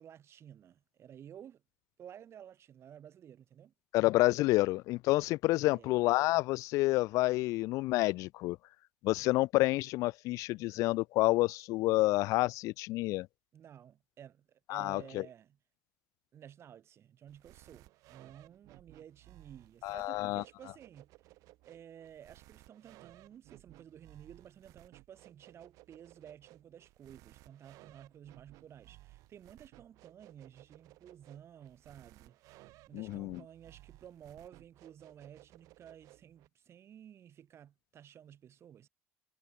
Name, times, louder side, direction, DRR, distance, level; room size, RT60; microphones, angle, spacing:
voice 1, 0.0-1.6 2.0-3.7 5.6-5.9 13.5-15.6 16.3-21.1 21.7-38.9, right 9 dB, 50° right, 2.9 m, -54 dB
voice 2, 3.9-8.6 9.0-13.3 14.7-15.2 19.8-20.4 32.9-33.4, left 19 dB, 70° left, 0.4 m, -29 dB
sound 1, 17.3-36.5, right 19 dB, 70° right, 4.7 m, -59 dB
supercardioid pair, 85°, 6 cm